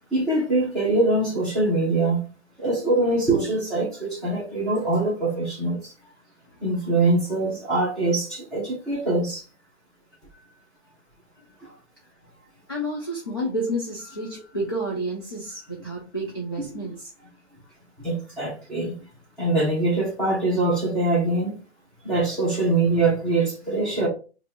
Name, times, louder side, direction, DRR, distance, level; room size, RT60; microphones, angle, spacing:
voice 1, 0.1-2.2 2.6-5.9 6.6-9.4 16.6-16.9 18.0-18.9 19.4-21.5 22.0-24.1, right 2 dB, ahead, -7 dB, 1.0 m, -23 dB
voice 2, 12.7-16.9, right 1 dB, 20° left, -2 dB, 0.3 m, -30 dB
5.3 x 2.6 x 2.8 m, 0.35 s
hypercardioid pair, 160°, 35 cm